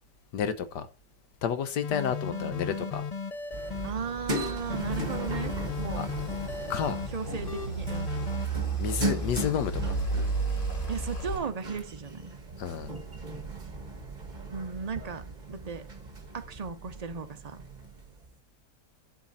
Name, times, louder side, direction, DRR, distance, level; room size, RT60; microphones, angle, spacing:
voice 1, 0.3-0.9 1.4-3.0 5.9-6.1 6.7-7.0 8.8-9.8 12.6-12.9, left 8 dB, 80° left, 1.6 m, -30 dB
sound 1, 1.8-3.9 4.3-7.1 7.5-8.5, left 5 dB, 45° left, 0.4 m, -36 dB
voice 2, 2.2-2.9 3.8-6.1 7.1-8.1 9.0-9.3 10.9-12.3 14.5-15.2 15.5-15.8 16.3-17.7, right 5 dB, 70° right, 0.3 m, -36 dB
sound 2, 3.5-18.3, right 2 dB, 25° right, 1.6 m, -38 dB
sound 3, 4.4-11.4, right 3 dB, 30° left, 2.1 m, -34 dB
9.3 x 7.4 x 4.1 m
omnidirectional pair, 1.8 m